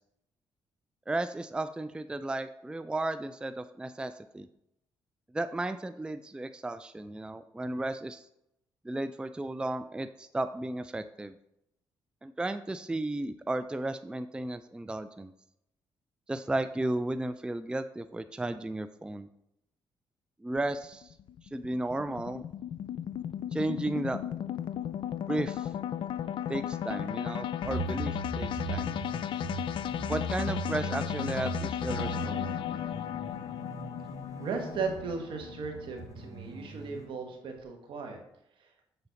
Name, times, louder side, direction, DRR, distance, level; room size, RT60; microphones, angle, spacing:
voice 1, 1.1-4.5 5.3-8.3 8.8-11.3 12.2-15.3 16.3-19.3 20.4-21.1 21.5-22.5 23.5-24.2 25.3-25.7 26.5-28.9 30.1-32.5, right 2 dB, 10° right, 11 dB, 0.4 m, -34 dB
sound 1, 20.6-37.0, left 10 dB, 70° left, 0.4 m, -35 dB
sound 2, 27.6-37.1, right 3 dB, 40° right, 1.4 m, -39 dB
voice 2, 34.4-38.2 38.6-38.7, right 4 dB, 70° right, 3 dB, 1.4 m, -36 dB
6.8 x 3.9 x 5.8 m, 0.81 s
supercardioid pair, 60°, 9 cm